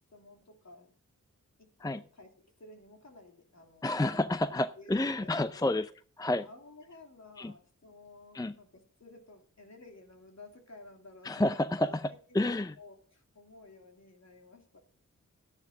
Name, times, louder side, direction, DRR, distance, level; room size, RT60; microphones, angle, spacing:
voice 1, 0.1-0.9 1.6-4.1 4.4-5.7 6.3-14.8, left 2 dB, 55° left, 2 dB, 3.1 m, -54 dB
voice 2, 3.8-5.9 6.2-6.4 7.4-7.5 8.3-8.5 11.2-12.1 12.3-12.7, left 1 dB, 10° left, 12 dB, 0.6 m, -29 dB
12.5 x 10.5 x 3.8 m, 0.42 s
cardioid pair, 45°, 32 cm